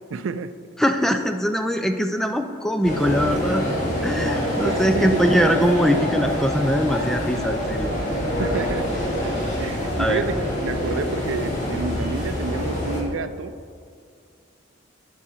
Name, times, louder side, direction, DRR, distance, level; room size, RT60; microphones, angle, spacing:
voice 1, 0.1-0.5 4.2-4.3 4.6-5.2 8.4-8.9 9.2-9.3 9.6-13.5, right 4 dB, 75° right, 12 dB, 0.4 m, -29 dB
voice 2, 0.8-3.7 4.0-8.0 10.0-10.2, equal, ahead, 7 dB, 0.4 m, -22 dB
sound 1, 2.8-13.0, equal, 40° left, 2.1 m, -25 dB
12.5 x 6.2 x 4.3 m, 2.3 s
head